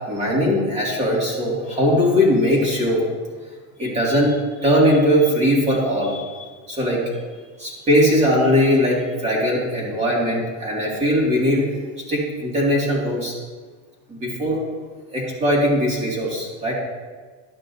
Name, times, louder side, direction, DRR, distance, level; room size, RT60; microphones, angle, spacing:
voice 1, 0.1-3.0 3.8-7.0 7.6-11.7 12.1-13.3 14.1-14.6 15.1-16.7, equal, 15° right, -4 dB, 2.3 m, -20 dB
12.5 x 6.5 x 2.7 m, 1.5 s
supercardioid pair, 155°, 40 cm